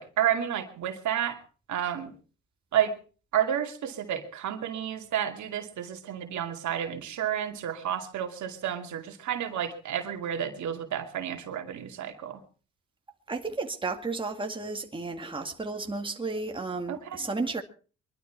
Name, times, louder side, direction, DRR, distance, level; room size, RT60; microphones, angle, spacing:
voice 1, 0.0-1.4 1.7-2.1 2.7-2.9 3.3-12.4 16.9-17.2, right 10 dB, 70° right, 2.5 m, -31 dB
voice 2, 13.3-17.6, right 3 dB, 15° right, 2.2 m, -33 dB
23.0 x 12.0 x 4.6 m
cardioid pair, 90°, 30 cm